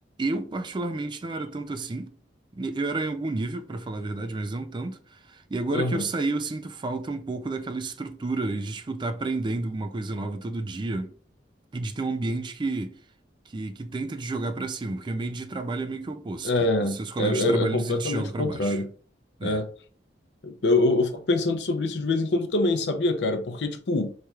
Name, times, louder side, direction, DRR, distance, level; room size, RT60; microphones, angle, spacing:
voice 1, 0.2-2.1 2.5-11.1 11.7-12.9 13.5-18.8 19.4-19.6, right 2 dB, 25° right, 0.4 m, -31 dB
voice 2, 5.7-6.1 16.4-18.9 19.4-19.7 20.4-24.1, left 2 dB, 70° left, 0.6 m, -25 dB
4.3 x 3.2 x 2.3 m
head